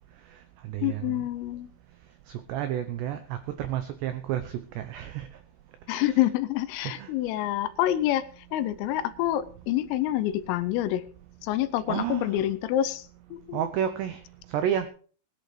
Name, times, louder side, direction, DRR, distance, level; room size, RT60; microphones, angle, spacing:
voice 1, 0.3-1.2 2.3-5.3 5.9-6.2 6.8-7.1 11.9-12.4 13.5-14.2 14.5-14.9, right 10 dB, 85° right, 9 dB, 2.4 m, -31 dB
voice 2, 0.8-1.7 5.9-8.3 8.5-11.0 11.4-13.0 13.3-13.6, left 13 dB, 85° left, 13 dB, 3.4 m, -27 dB
20.0 x 11.0 x 3.2 m, 0.42 s
omnidirectional pair, 6.0 m